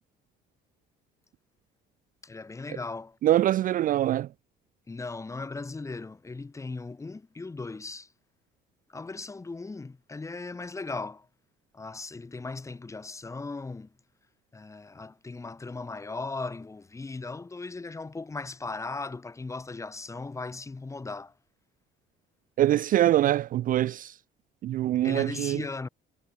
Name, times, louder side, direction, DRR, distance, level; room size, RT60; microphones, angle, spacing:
voice 1, 2.2-3.2 4.9-8.1 8.9-11.3 11.7-13.9 14.5-21.3 25.0-25.9, left 3 dB, 15° left, 2.2 m, -37 dB
voice 2, 3.2-4.3 22.6-24.2 24.6-25.6, right 13 dB, 45° right, 0.4 m, -24 dB
cardioid pair, 140°, 19 cm